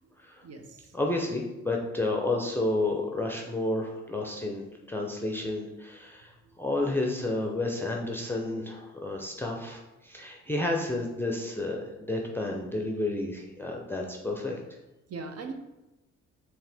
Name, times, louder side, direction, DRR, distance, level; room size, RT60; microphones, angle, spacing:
voice 1, 0.4-0.9 6.4-6.5 15.1-15.5, right 4 dB, 55° right, 5 dB, 0.7 m, -40 dB
voice 2, 0.9-6.3 6.6-14.6, left 2 dB, 5° left, 0 dB, 0.6 m, -31 dB
4.6 x 3.4 x 3.4 m, 1.0 s
cardioid pair, 90°, 30 cm